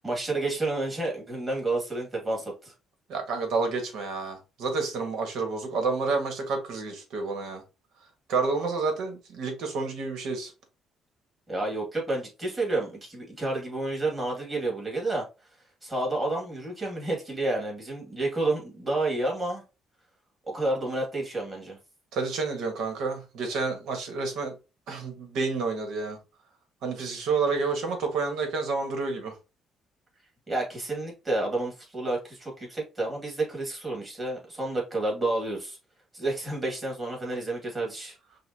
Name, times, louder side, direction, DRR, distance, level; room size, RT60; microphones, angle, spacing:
voice 1, 0.0-2.7 11.5-15.3 15.8-19.6 20.5-21.8 30.5-35.8 36.1-38.2, right 2 dB, 20° right, 2.3 m, -30 dB
voice 2, 3.1-7.6 8.3-10.5 22.1-24.5 24.9-26.2 26.8-29.4, right 4 dB, 75° right, 1.6 m, -29 dB
5.7 x 2.6 x 2.8 m
cardioid pair, 125°, 0 cm